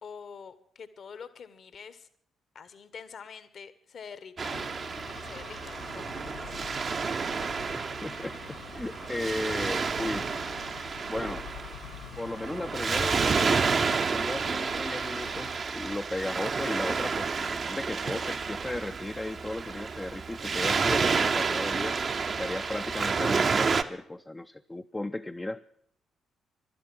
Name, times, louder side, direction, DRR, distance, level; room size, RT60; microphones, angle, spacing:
voice 1, 0.0-2.1 2.5-4.7 5.2-6.7, left 6 dB, 50° left, 14 dB, 1.0 m, -46 dB
Waves surf, 4.4-23.8, right 5 dB, 45° right, 0.7 m, -30 dB
sound 1, 4.5-15.6, left 9 dB, 70° left, 0.6 m, -47 dB
voice 2, 7.7-10.3 11.1-11.5 12.2-13.6 14.1-22.0 22.3-25.6, left 1 dB, 15° left, 7 dB, 0.5 m, -35 dB
12.0 x 11.0 x 7.6 m, 0.65 s
figure-of-eight pair, 40°, 0 cm